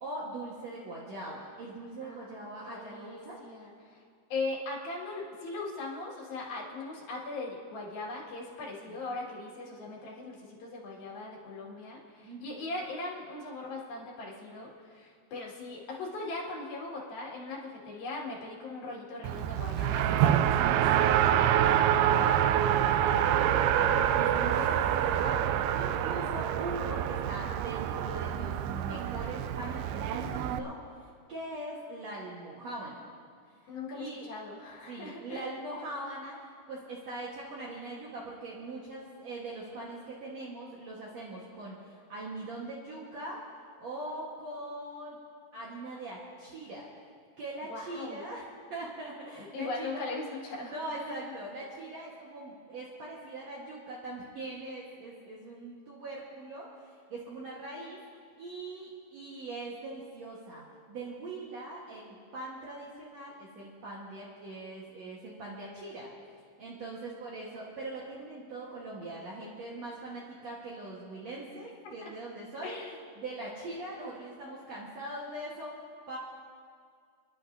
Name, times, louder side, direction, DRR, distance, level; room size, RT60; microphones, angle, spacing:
voice 1, 0.0-3.4 8.9-9.0 12.2-12.6 21.5-30.8 31.3-33.0 33.9-34.3 34.9-36.4 36.7-43.4 43.8-45.2 45.5-46.9 47.4-48.4 48.7-50.1 50.6-58.0 58.4-66.1 66.6-72.8 73.2-75.8 76.1-76.2, right 2 dB, 60° right, -5 dB, 1.9 m, -41 dB
voice 2, 2.0-4.0 4.3-21.1 33.7-35.5 47.7-48.2 49.4-51.3 71.8-72.1 72.6-72.9, left 3 dB, 65° left, -4 dB, 3.7 m, -40 dB
Race car auto racing, 19.2-30.6, right 10 dB, 85° right, 2.4 m, -26 dB
28.5 x 11.0 x 2.7 m, 2.2 s
omnidirectional pair, 4.7 m